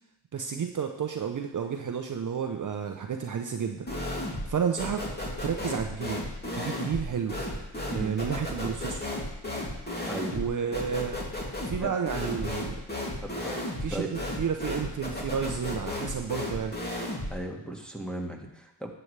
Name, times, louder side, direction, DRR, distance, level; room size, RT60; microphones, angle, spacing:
voice 1, 0.3-3.9 4.5-5.0 5.4-6.3 6.5-7.4 7.9-9.0 10.3-11.2 11.6-12.8 13.8-16.7, right 7 dB, 40° right, 5 dB, 0.8 m, -31 dB
sound 1, 3.9-4.5 4.8-17.4, left 1 dB, 20° left, 2.8 m, -34 dB
voice 2, 10.1-10.4 11.8-11.9 13.2-13.6 13.9-14.1 17.3-18.9, right 1 dB, ahead, 1 dB, 1.9 m, -36 dB
12.0 x 8.2 x 3.4 m, 0.87 s
cardioid pair, 65°, 46 cm